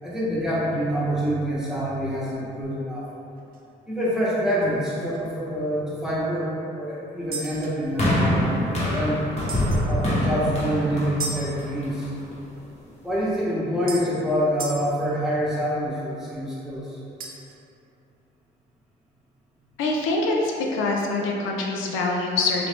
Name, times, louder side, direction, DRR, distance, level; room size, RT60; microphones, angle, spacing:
voice 1, 0.0-3.0 3.9-6.5 6.8-8.4 8.8-9.2 9.9-12.1 13.0-17.0, equal, 5° right, -8 dB, 0.9 m, -26 dB
sound 1, 3.4-3.6 4.1-4.2 4.5-4.6 5.1-5.2 7.3-8.6 9.5-9.9 11.2-11.4 13.1-13.2 13.9-14.1 14.6-14.8 17.2-17.5, right 4 dB, 45° right, 0.5 m, -34 dB
sound 2, 8.0-12.3 13.1-13.2, equal, 35° left, 0.9 m, -25 dB
voice 2, 19.8-22.7, left 3 dB, 90° left, 0 dB, 0.5 m, -24 dB
3.2 x 2.4 x 3.4 m, 2.6 s
cardioid pair, 90°, 20 cm